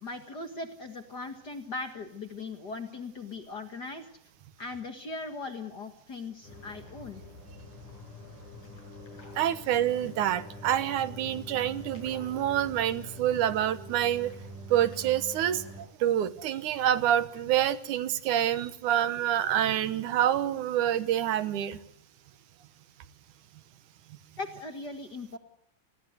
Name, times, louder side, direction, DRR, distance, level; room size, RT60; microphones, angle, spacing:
voice 1, 0.0-4.1 4.6-7.2 24.4-25.4, left 3 dB, 40° left, 7 dB, 1.9 m, -39 dB
sound 1, 6.4-15.8, left 1 dB, 70° left, 9.6 m, -45 dB
voice 2, 9.4-14.3 14.7-15.6 16.0-21.8, right 11 dB, 75° right, 14 dB, 2.5 m, -27 dB
29.0 x 20.0 x 8.0 m, 0.69 s
omnidirectional pair, 3.7 m